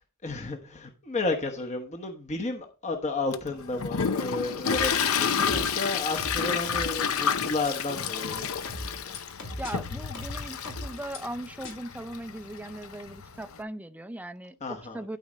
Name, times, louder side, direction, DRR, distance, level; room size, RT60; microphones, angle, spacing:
voice 1, 0.2-8.5 14.6-15.2, left 2 dB, 35° left, 1.0 m, -32 dB
Toilet flush, 3.3-13.6, left 7 dB, 85° left, 0.7 m, -30 dB
sound 1, 4.6-5.7 6.1-6.9 7.6-7.7 8.6-9.7 10.1-11.2 11.6-11.7, left 1 dB, 65° left, 3.1 m, -38 dB
voice 2, 9.6-15.2, right 1 dB, 5° right, 0.4 m, -39 dB
12.0 x 4.2 x 5.0 m
head